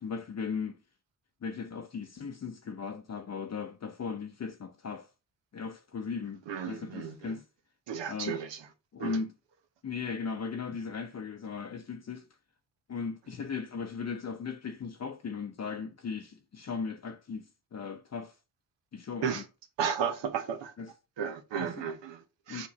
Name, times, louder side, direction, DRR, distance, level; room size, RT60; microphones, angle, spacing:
voice 1, 0.0-0.8 1.4-5.1 5.5-7.4 8.1-8.4 8.9-9.3 9.8-12.3 12.9-18.3 18.9-19.4 20.8-20.9 21.6-21.9 22.5-22.7, left 5 dB, 35° left, 0.7 m, -37 dB
voice 2, 6.5-7.4 7.9-8.6 9.0-9.2 19.2-19.4 19.8-20.7 21.2-22.7, right 7 dB, 65° right, 1.1 m, -34 dB
7.0 x 4.4 x 3.1 m
hypercardioid pair, 45°, 46 cm